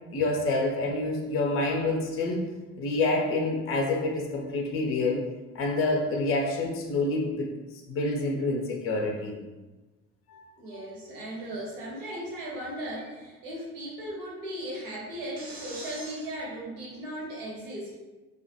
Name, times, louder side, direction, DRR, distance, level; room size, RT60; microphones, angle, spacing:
voice 1, 0.1-2.4 2.8-5.2 5.5-7.5 7.9-9.4 10.3-10.4 10.7-10.8, left 2 dB, 30° left, 1 dB, 0.5 m, -27 dB
voice 2, 10.6-18.0, right 1 dB, 70° right, -4 dB, 1.0 m, -37 dB
2.3 x 2.1 x 2.7 m, 1.2 s
figure-of-eight pair, 55°, 46 cm